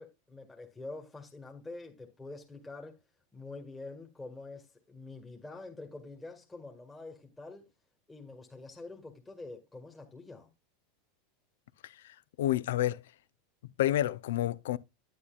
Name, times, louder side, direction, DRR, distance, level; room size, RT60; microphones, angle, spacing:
voice 1, 0.0-3.0 3.3-7.7 8.1-10.5, left 3 dB, 15° left, 1.6 m, -46 dB
voice 2, 11.8-13.0 13.6-14.8, left 13 dB, 75° left, 0.5 m, -30 dB
9.8 x 9.7 x 2.3 m
hypercardioid pair, 95°, 0 cm